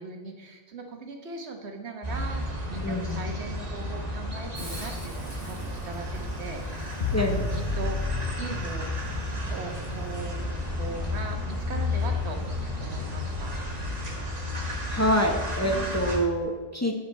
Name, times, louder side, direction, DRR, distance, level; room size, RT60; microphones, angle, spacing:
voice 1, 0.0-6.0 6.4-8.9 9.4-10.4 10.8-12.4 12.8-13.6 15.6-16.0, right 3 dB, 85° right, 3 dB, 1.4 m, -39 dB
sound 1, 2.0-16.2, left 1 dB, 40° right, 1.7 m, -32 dB
voice 2, 2.8-3.3 7.1-7.4 14.9-16.9, equal, 15° left, 2 dB, 0.8 m, -26 dB
Hiss, 4.5-10.2, right 1 dB, 60° right, 2.9 m, -50 dB
sound 2, 7.0-10.1, left 4 dB, 65° left, 1.1 m, -32 dB
15.0 x 5.0 x 4.1 m, 1.3 s
omnidirectional pair, 1.1 m